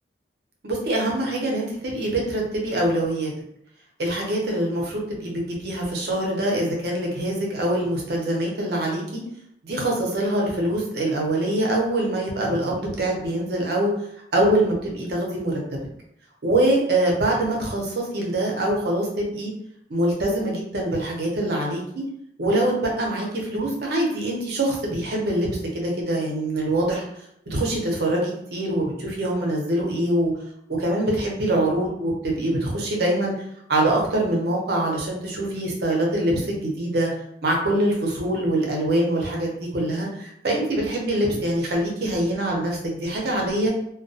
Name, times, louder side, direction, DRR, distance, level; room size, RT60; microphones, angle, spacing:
voice 1, 0.6-3.3 4.0-9.2 9.6-13.9 14.3-15.6 16.4-19.5 19.9-22.0 22.4-25.5 25.7-27.0 27.5-30.3 30.8-33.4 33.7-37.1 37.4-43.7, right 1 dB, 60° right, -1 dB, 0.6 m, -24 dB
2.2 x 2.2 x 2.6 m, 0.74 s
head